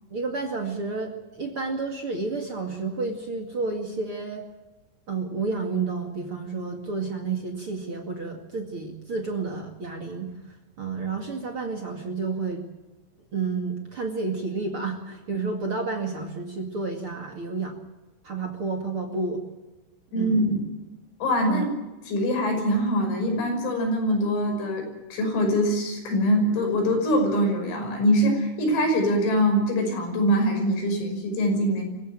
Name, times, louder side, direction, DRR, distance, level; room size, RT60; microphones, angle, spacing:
voice 1, 0.1-4.4 5.1-12.7 13.3-17.8 18.2-19.4 20.1-20.5 21.5-21.6, right 4 dB, 45° right, 3 dB, 1.8 m, -30 dB
voice 2, 20.1-20.6 21.2-21.7 22.1-24.9 25.1-31.8, equal, 85° left, 4 dB, 8.4 m, -23 dB
25.5 x 16.0 x 8.9 m, 1.1 s
omnidirectional pair, 5.8 m